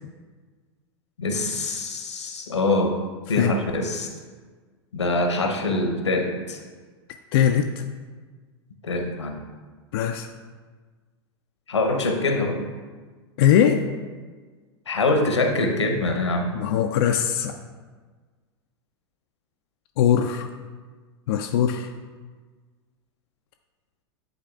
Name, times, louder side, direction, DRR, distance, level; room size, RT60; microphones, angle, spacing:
voice 1, 1.2-2.9 3.3-4.1 4.9-6.6 8.8-9.3 11.7-12.6 14.9-16.5, left 2 dB, 85° left, 3 dB, 0.9 m, -24 dB
voice 2, 7.3-7.8 9.9-10.3 13.4-13.8 16.5-17.5 20.0-20.5 21.3-21.9, left 9 dB, 60° left, 4 dB, 0.4 m, -21 dB
10.5 x 4.0 x 2.4 m, 1.4 s
figure-of-eight pair, 90°, 14 cm